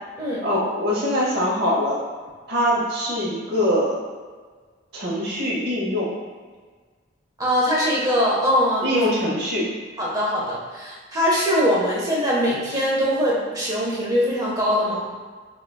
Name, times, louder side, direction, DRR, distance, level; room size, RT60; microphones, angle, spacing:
voice 1, 0.4-2.0 2.5-4.0 4.9-6.1 8.8-9.7, equal, 55° right, -4 dB, 0.8 m, -23 dB
voice 2, 7.4-9.0 10.0-15.0, equal, 20° right, -5 dB, 0.7 m, -22 dB
4.7 x 2.3 x 2.2 m, 1.5 s
head